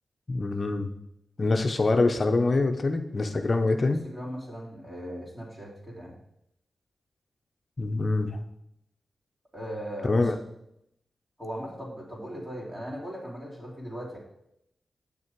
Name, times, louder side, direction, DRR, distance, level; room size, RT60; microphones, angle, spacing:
voice 1, 0.3-0.9 1.4-4.0 7.8-8.4 10.0-10.4, left 3 dB, 45° left, 6 dB, 0.7 m, -25 dB
voice 2, 3.8-6.2 9.5-10.3 11.4-14.2, equal, 25° right, -5 dB, 3.2 m, -38 dB
8.5 x 6.2 x 4.6 m, 0.79 s
cardioid pair, 65°, 0 cm